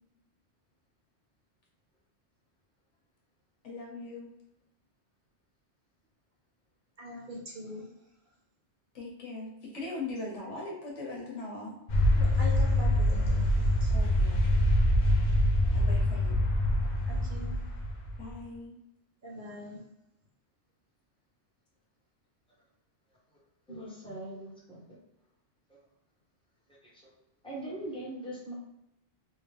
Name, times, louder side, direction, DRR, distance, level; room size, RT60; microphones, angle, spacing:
voice 1, 3.6-4.3 8.9-11.7 13.9-14.6 15.7-16.4 18.2-18.7, left 2 dB, 85° left, -2 dB, 1.4 m, -40 dB
voice 2, 7.0-7.9 12.2-14.0 17.1-17.6 19.2-19.8, left 1 dB, 50° right, -3 dB, 0.9 m, -43 dB
sound 1, 11.9-18.4, left 1 dB, 50° left, 0.6 m, -25 dB
voice 3, 23.7-24.8 25.7-25.8 26.7-27.1 27.4-28.5, right 1 dB, 5° left, -7 dB, 1.1 m, -41 dB
3.3 x 2.7 x 3.3 m, 0.85 s
omnidirectional pair, 1.2 m